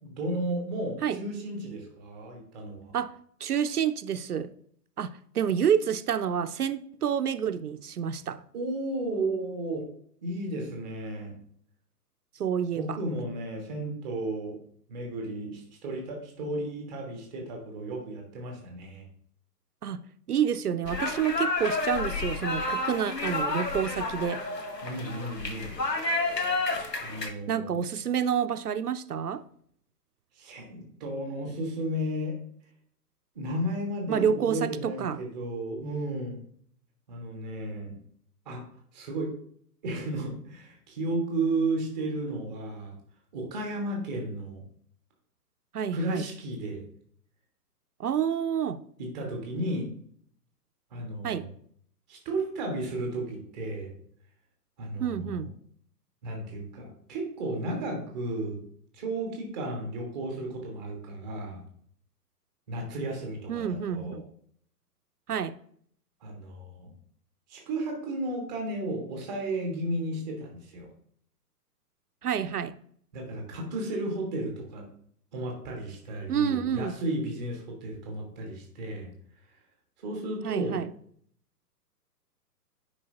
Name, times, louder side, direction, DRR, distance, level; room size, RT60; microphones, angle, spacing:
voice 1, 0.0-2.9 8.5-9.8 10.2-11.3 12.8-14.6 14.9-19.0 24.8-25.8 27.0-27.8 30.3-32.4 33.3-36.4 37.1-38.0 38.4-38.6 38.9-39.3 39.8-42.9 43.3-44.6 45.9-46.8 49.0-49.9 50.9-51.5 52.1-53.9 54.8-55.5 56.2-58.6 58.9-61.7 62.7-64.2 66.2-66.9 67.5-70.9 73.1-74.8 75.3-79.1 80.0-80.9, right 1 dB, ahead, 0.5 m, -33 dB
voice 2, 3.4-4.5 5.0-8.4 12.4-13.0 19.8-20.0 20.3-24.4 27.5-29.4 34.1-35.2 45.7-46.3 48.0-48.8 51.2-51.5 55.0-55.5 63.5-64.2 65.3-65.6 72.2-72.8 76.3-76.9 80.4-80.9, right 8 dB, 70° right, 0.5 m, -28 dB
sound 1, 20.8-27.3, left 3 dB, 80° left, 1.2 m, -30 dB
9.7 x 4.8 x 2.8 m
figure-of-eight pair, 125°, 48 cm